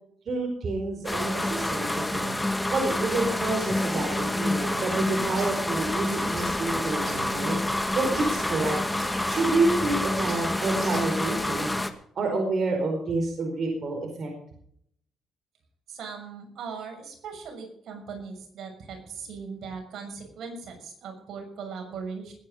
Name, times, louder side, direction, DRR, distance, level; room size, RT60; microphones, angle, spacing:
voice 1, 0.2-2.4 2.7-7.6 7.9-11.8 12.1-14.3, right 2 dB, 50° right, 1 dB, 4.7 m, -28 dB
sound 1, 1.0-11.9, left 1 dB, 10° left, 1.6 m, -28 dB
sound 2, 4.7-11.5, right 3 dB, 30° right, 5.6 m, -48 dB
voice 2, 15.9-22.3, right 5 dB, 70° right, 3 dB, 6.3 m, -39 dB
20.5 x 9.7 x 5.1 m, 0.67 s
cardioid pair, 90°, 0 cm